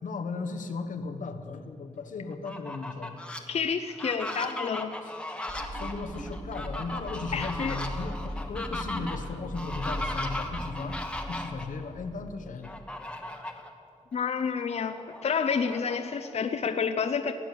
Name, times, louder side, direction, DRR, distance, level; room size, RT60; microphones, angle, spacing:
voice 1, 0.0-3.2 5.0-5.1 5.7-12.8, left 4 dB, 90° left, 6 dB, 1.1 m, -36 dB
Fowl, 2.3-3.4 3.9-11.6 12.6-13.7 14.1-14.2 14.6-16.3, left 1 dB, 10° left, 1.2 m, -37 dB
voice 2, 3.5-4.9 7.3-7.8 14.1-17.3, left 6 dB, 55° left, 7 dB, 0.6 m, -29 dB
sound 1, 5.5-12.9, equal, 25° right, 2.2 m, -39 dB
16.0 x 10.5 x 8.4 m, 2.6 s
wide cardioid pair, 135°, 13 cm